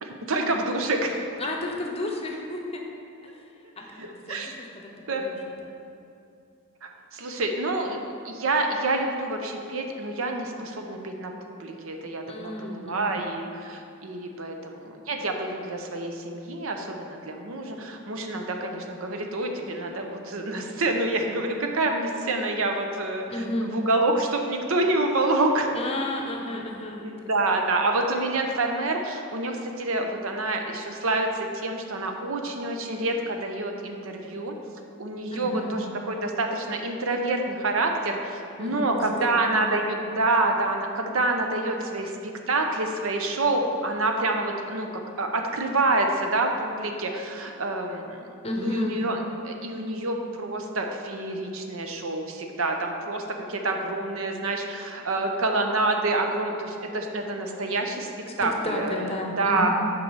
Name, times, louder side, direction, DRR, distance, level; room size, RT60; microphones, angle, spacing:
voice 1, 0.0-1.2 4.0-4.5 5.1-5.2 6.8-23.3 23.6-25.7 26.6-34.5 35.0-48.3 48.6-49.2 49.4-58.1 58.4-59.1 59.4-59.7, right 2 dB, 65° right, 3 dB, 0.7 m, -27 dB
voice 2, 1.4-2.8 3.2-3.4 3.8-5.4 12.3-13.3 23.3-23.7 25.7-27.1 35.3-35.8 38.6-39.8 48.4-49.0 58.4-59.7, left 1 dB, 25° left, 1 dB, 0.8 m, -32 dB
8.2 x 5.4 x 4.7 m, 2.6 s
head